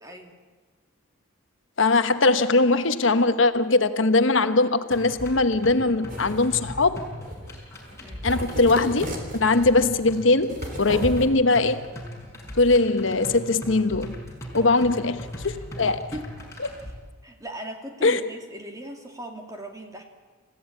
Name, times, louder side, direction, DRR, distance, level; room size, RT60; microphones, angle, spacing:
voice 1, 0.0-0.4 8.0-8.3 14.6-14.7 16.1-16.3 17.2-20.0, right 1 dB, 15° right, 3 dB, 2.6 m, -39 dB
voice 2, 1.8-7.0 8.2-9.1 9.3-11.8 12.5-14.2 14.5-16.1 18.0-18.2, left 3 dB, 70° left, 10 dB, 1.1 m, -21 dB
sound 1, 4.9-16.9, equal, 15° left, 5.2 m, -39 dB
sound 2, 6.1-6.5 7.2-7.6 7.9-8.0 8.3-9.9 10.5-11.3, equal, 40° right, 3.7 m, -34 dB
28.5 x 16.0 x 8.7 m, 1.4 s
head